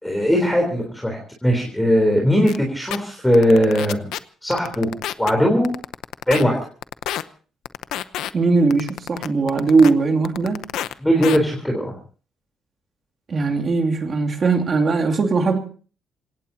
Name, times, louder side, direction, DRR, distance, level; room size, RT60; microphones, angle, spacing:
voice 1, 0.0-4.1 4.4-4.9 5.2-5.7 6.3-6.6 11.0-11.9, equal, 5° left, 1 dB, 3.7 m, -19 dB
sound 1, 2.5-2.6 2.9-3.0 3.3-4.2 4.5-5.3 5.6-6.4 6.8-7.2 7.7-8.3 8.7-9.9 10.2-10.9 11.2-11.4, left 12 dB, 85° left, 0.8 m, -28 dB
voice 2, 8.3-10.6 13.3-15.6, right 4 dB, 35° right, 3 dB, 2.7 m, -19 dB
27.5 x 17.5 x 2.8 m, 0.39 s
cardioid pair, 135°, 0 cm